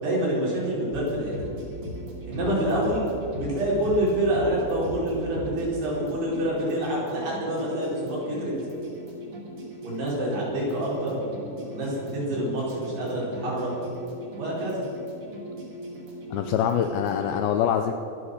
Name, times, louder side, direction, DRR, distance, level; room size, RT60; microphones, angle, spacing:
voice 1, 0.0-1.3 2.2-3.1 3.4-8.5 9.8-11.2 11.6-13.7 14.4-14.8, right 1 dB, 70° right, -6 dB, 6.6 m, -27 dB
sound 1, 0.9-17.4, right 1 dB, 35° right, 3.1 m, -39 dB
voice 2, 16.3-17.9, left 9 dB, 80° left, 7 dB, 2.2 m, -24 dB
25.5 x 8.5 x 6.5 m, 2.9 s
omnidirectional pair, 4.9 m